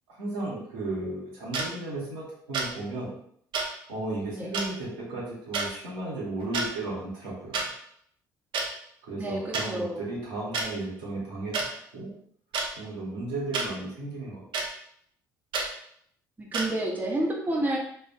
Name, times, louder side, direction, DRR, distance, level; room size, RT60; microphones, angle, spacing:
voice 1, 0.2-3.1 3.9-7.6 9.0-12.1 12.8-14.4, right 2 dB, 80° right, -6 dB, 1.1 m, -34 dB
sound 1, 1.5-1.7 2.5-2.7 3.5-3.7 4.5-4.7 5.5-5.7 6.4-6.7 7.5-7.7 8.5-8.7 9.5-9.7 10.5-10.7 11.5-11.7 12.5-12.7 13.5-13.7 14.5-14.7 15.5-15.7 16.5-16.7, right 4 dB, 55° right, 0.6 m, -28 dB
voice 2, 9.2-10.0 16.4-17.8, right 1 dB, 15° right, -2 dB, 0.8 m, -29 dB
3.2 x 2.4 x 2.4 m, 0.67 s
hypercardioid pair, 55°, 10 cm